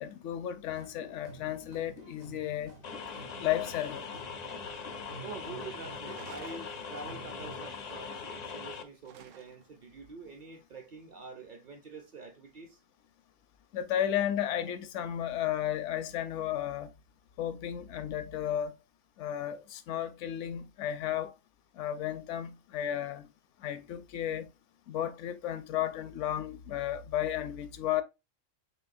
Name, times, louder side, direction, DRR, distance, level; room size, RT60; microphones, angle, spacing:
voice 1, 0.0-2.7 3.4-4.1 13.7-16.9 17.4-18.7 19.2-21.3 21.8-23.3 23.6-24.5 24.9-28.0, left 11 dB, 75° left, 0.9 m, -33 dB
sound 1, 0.7-7.7, right 1 dB, 65° right, 1.6 m, -51 dB
sound 2, 2.8-8.8, left 5 dB, 55° left, 0.4 m, -41 dB
voice 2, 5.2-12.8, right 4 dB, 50° right, 0.7 m, -46 dB
sound 3, 6.1-7.3 9.1-9.8, right 8 dB, 80° right, 1.0 m, -52 dB
4.7 x 3.2 x 2.6 m
omnidirectional pair, 1.3 m